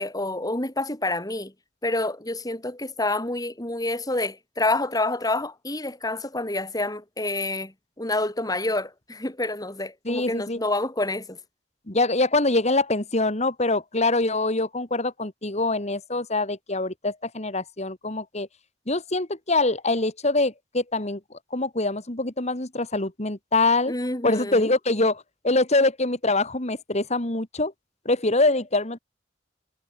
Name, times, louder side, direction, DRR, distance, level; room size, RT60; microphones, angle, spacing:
voice 1, 0.0-1.5 1.8-11.4 23.9-24.7, left 2 dB, 20° left, 3.3 m, -28 dB
voice 2, 10.0-10.6 11.9-18.5 18.9-21.2 21.5-23.9 24.2-27.7 28.0-29.0, left 2 dB, 35° left, 2.5 m, -24 dB
head